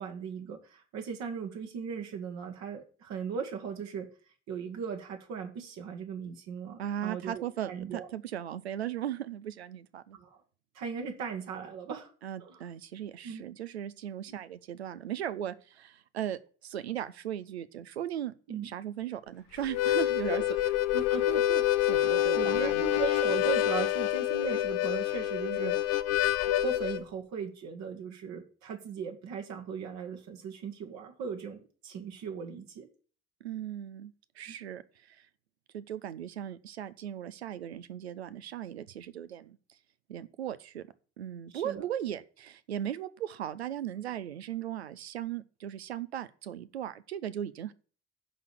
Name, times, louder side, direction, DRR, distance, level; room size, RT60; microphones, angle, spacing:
voice 1, 0.0-4.1 4.5-8.1 10.1-10.3 10.7-12.1 12.4-12.6 13.2-13.5 18.5-18.7 20.3-21.7 22.0-25.8 26.5-32.9 34.5-34.6 41.5-41.8, right 6 dB, 60° right, 1.5 m, -38 dB
voice 2, 6.8-10.2 12.2-18.3 18.6-20.4 21.9-22.8 25.6-25.8 33.4-34.8 35.1-35.3 35.7-39.6 40.1-40.9 41.2-47.7, right 10 dB, 80° right, 0.5 m, -37 dB
Harmonica, 19.6-27.0, left 13 dB, 55° left, 0.6 m, -27 dB
11.0 x 4.1 x 7.7 m
figure-of-eight pair, 45°, 31 cm